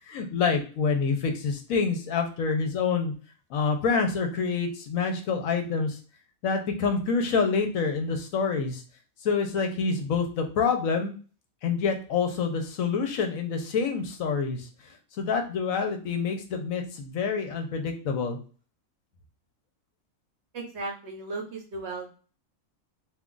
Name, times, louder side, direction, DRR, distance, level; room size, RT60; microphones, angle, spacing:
voice 1, 0.1-3.1 3.5-6.0 6.4-8.8 9.2-11.1 11.6-14.7 15.2-18.4, left 5 dB, 75° left, 5 dB, 1.1 m, -27 dB
voice 2, 20.5-22.1, right 3 dB, 60° right, 1 dB, 0.9 m, -35 dB
2.6 x 2.4 x 3.7 m, 0.38 s
omnidirectional pair, 1.4 m